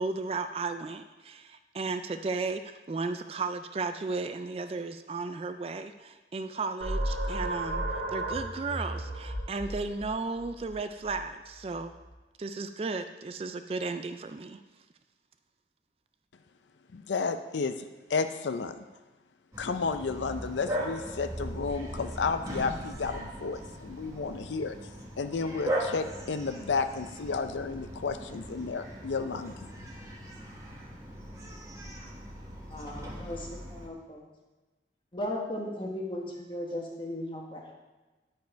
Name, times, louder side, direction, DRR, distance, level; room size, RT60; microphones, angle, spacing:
voice 1, 0.0-11.9 12.4-14.6, right 3 dB, 35° right, 9 dB, 0.3 m, -34 dB
sound 1, 6.8-12.1, right 1 dB, 65° right, 1.7 m, -35 dB
voice 2, 16.9-18.8 19.6-24.8 25.2-29.7, left 4 dB, 85° left, 9 dB, 0.5 m, -32 dB
Bark, 19.5-33.9, right 1 dB, 20° right, 1.1 m, -39 dB
voice 3, 32.7-34.2 35.1-37.7, left 1 dB, 30° left, -1 dB, 1.4 m, -36 dB
10.5 x 5.3 x 4.5 m, 1.2 s
head